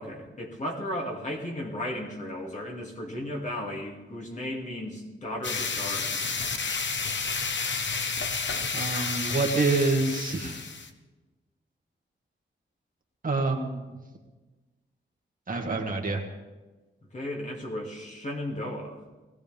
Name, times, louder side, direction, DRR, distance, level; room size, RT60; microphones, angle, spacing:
voice 1, 0.0-6.4 17.1-19.0, left 1 dB, 35° left, -1 dB, 2.5 m, -35 dB
sound 1, 5.4-10.9, left 4 dB, 65° left, 1.1 m, -31 dB
voice 2, 8.7-10.6 13.2-13.9 15.5-16.2, right 3 dB, 40° right, 1 dB, 1.9 m, -27 dB
21.0 x 16.5 x 3.5 m, 1.2 s
wide cardioid pair, 155°, 21 cm